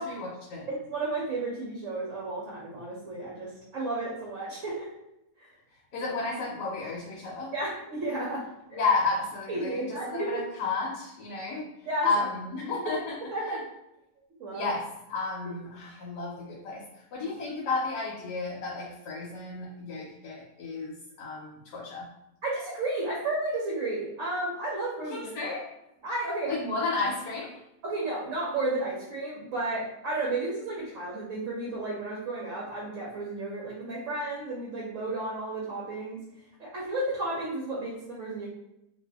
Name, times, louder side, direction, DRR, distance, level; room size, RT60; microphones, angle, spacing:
voice 1, 0.0-0.7 5.9-7.5 8.7-11.6 12.0-13.2 13.5-13.6 14.5-14.8 15.1-16.8 17.1-22.1 25.1-25.6 26.5-27.6, left 3 dB, 85° left, -3 dB, 1.3 m, -32 dB
voice 2, 0.7-4.9 5.4-5.5 7.5-8.8 9.5-10.4 11.8-12.3 12.8-12.9 13.3-13.6 14.4-14.7 15.4-15.5 17.2-17.3 22.4-25.2 26.0-26.5 27.8-36.2 36.6-38.5, right 2 dB, 60° right, -5 dB, 1.0 m, -32 dB
2.8 x 2.6 x 3.3 m, 0.87 s
omnidirectional pair, 1.7 m